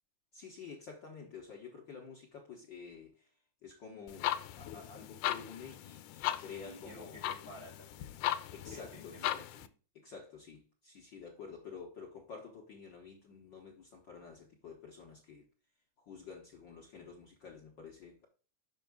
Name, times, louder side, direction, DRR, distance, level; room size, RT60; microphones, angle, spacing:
voice 1, 0.3-3.1 3.6-7.2 8.5-9.5 9.9-15.4 16.0-18.3, left 5 dB, 60° left, 1.3 m, -50 dB
sound 1, 4.1-9.7, left 12 dB, 85° left, 2.0 m, -38 dB
voice 2, 6.3-8.2 8.7-9.4, right 1 dB, 50° right, 1.2 m, -53 dB
6.7 x 5.7 x 3.5 m
omnidirectional pair, 3.5 m